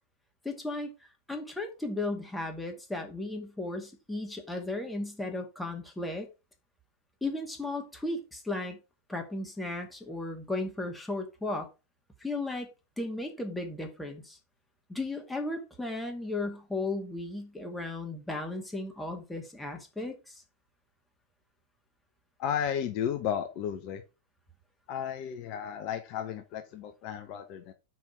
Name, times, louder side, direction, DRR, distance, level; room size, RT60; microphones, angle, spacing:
voice 1, 0.4-0.9 1.3-6.3 7.2-8.8 9.1-11.7 12.2-12.7 13.0-14.4 14.9-20.4, left 2 dB, 5° left, 2.1 m, -35 dB
voice 2, 22.4-24.0 24.9-27.7, left 8 dB, 40° left, 1.0 m, -33 dB
6.1 x 5.4 x 5.8 m
figure-of-eight pair, 90°, 0 cm